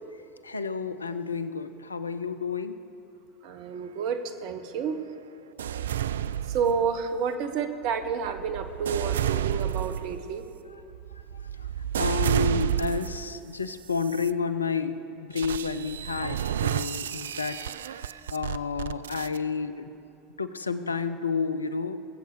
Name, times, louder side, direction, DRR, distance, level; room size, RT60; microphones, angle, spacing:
voice 1, 0.4-2.8 10.7-10.8 11.6-11.7 11.9-17.6 18.3-19.9 20.4-22.0, left 5 dB, 85° left, 12 dB, 0.6 m, -30 dB
voice 2, 3.4-5.0 6.5-10.4, right 6 dB, 55° right, 9 dB, 1.1 m, -30 dB
sound 1, 5.6-7.2 7.8-13.3 13.9-14.3 15.4-19.4, right 10 dB, 75° right, 0.3 m, -30 dB
21.0 x 7.8 x 6.8 m, 2.7 s
figure-of-eight pair, 80°, 0 cm